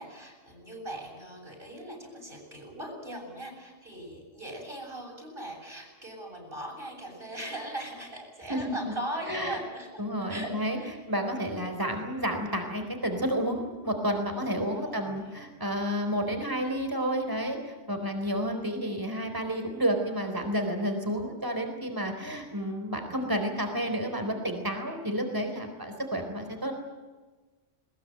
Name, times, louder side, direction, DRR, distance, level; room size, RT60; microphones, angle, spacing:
voice 1, 0.0-10.0 10.3-11.0 14.4-15.2, right 1 dB, 50° right, 1 dB, 7.9 m, -40 dB
voice 2, 8.5-8.9 9.3-9.6 10.0-10.8 11.1-26.7, equal, 15° right, 5 dB, 4.2 m, -30 dB
21.5 x 21.0 x 9.1 m, 1.2 s
omnidirectional pair, 1.2 m